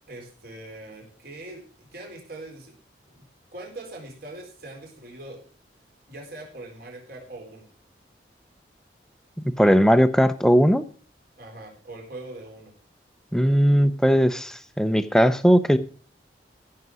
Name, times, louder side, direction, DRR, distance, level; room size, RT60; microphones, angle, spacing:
voice 1, 0.1-2.7 3.1-3.2 3.5-5.4 6.1-7.7 11.4-12.7, right 2 dB, 55° right, 4.0 m, -41 dB
voice 2, 9.6-10.8 13.3-15.8, equal, 5° left, 0.7 m, -18 dB
15.5 x 6.7 x 6.2 m
head